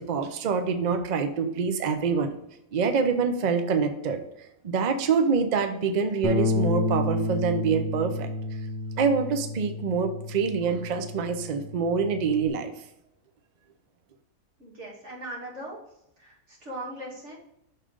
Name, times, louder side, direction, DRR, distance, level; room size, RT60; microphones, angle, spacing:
voice 1, 0.1-2.3 2.7-8.3 9.0-12.7, right 5 dB, 80° right, 8 dB, 0.3 m, -26 dB
Bass guitar, 6.2-12.5, left 2 dB, 45° left, 0.8 m, -31 dB
voice 2, 14.6-15.8 16.2-17.3, right 1 dB, 50° right, -3 dB, 2.1 m, -39 dB
6.5 x 3.7 x 5.0 m, 0.82 s
omnidirectional pair, 1.6 m